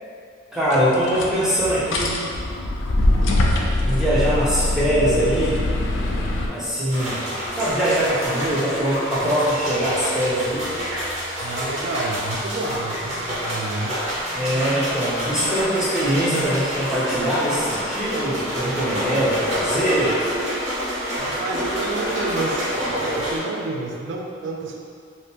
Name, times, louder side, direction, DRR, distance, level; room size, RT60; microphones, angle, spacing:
voice 1, 0.5-2.2 3.8-5.6 6.5-7.2 7.5-10.7 14.3-20.2, equal, 5° right, -10 dB, 0.5 m, -22 dB
sound 1, 0.7-6.5, left 1 dB, 75° left, 0.4 m, -22 dB
sound 2, 6.9-23.4, equal, 35° right, 0.8 m, -27 dB
voice 2, 11.4-14.0 21.2-24.9, right 2 dB, 65° right, 1 dB, 0.3 m, -29 dB
2.7 x 2.5 x 3.3 m, 2.3 s
head